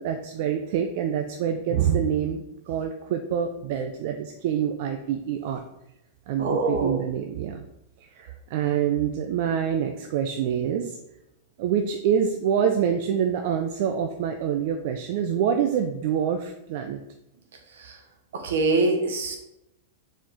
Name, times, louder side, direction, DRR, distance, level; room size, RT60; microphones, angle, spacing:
voice 1, 0.0-5.6 6.3-7.6 8.1-11.0 11.6-17.0, right 8 dB, 60° right, 5 dB, 0.6 m, -26 dB
voice 2, 6.4-7.0 18.3-19.4, right 3 dB, 75° right, 4 dB, 1.4 m, -24 dB
7.2 x 4.6 x 3.8 m, 0.86 s
hypercardioid pair, 110°, 0 cm